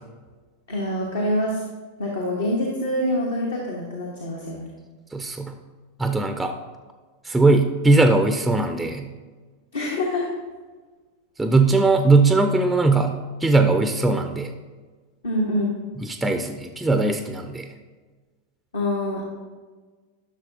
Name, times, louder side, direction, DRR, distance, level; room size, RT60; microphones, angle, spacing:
voice 1, 0.7-1.6 2.0-4.7 9.7-10.3 15.2-15.8 18.7-19.2, left 1 dB, 65° left, -1 dB, 1.1 m, -25 dB
voice 2, 5.1-5.5 6.0-6.5 7.3-9.1 11.4-13.1 13.4-14.5 16.0-17.7, right 3 dB, 5° right, 7 dB, 0.4 m, -19 dB
11.0 x 6.2 x 2.7 m, 1.4 s
figure-of-eight pair, 90°, 0 cm